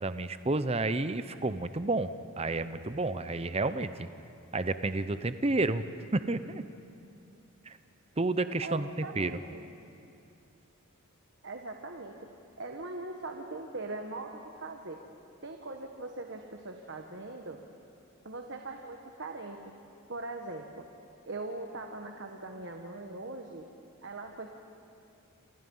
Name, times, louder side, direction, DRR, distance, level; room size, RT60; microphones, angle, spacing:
voice 1, 0.0-2.1 2.4-4.1 4.5-5.9 6.1-6.6 7.7-7.8 8.2-9.3, right 2 dB, 25° right, 12 dB, 0.7 m, -30 dB
voice 2, 8.6-9.6 11.4-12.1 12.6-15.0 15.4-17.6 18.2-19.6 20.1-20.8 21.3-23.6 24.0-24.5, right 2 dB, 55° right, 3 dB, 1.4 m, -41 dB
28.0 x 28.0 x 5.6 m, 2.7 s
head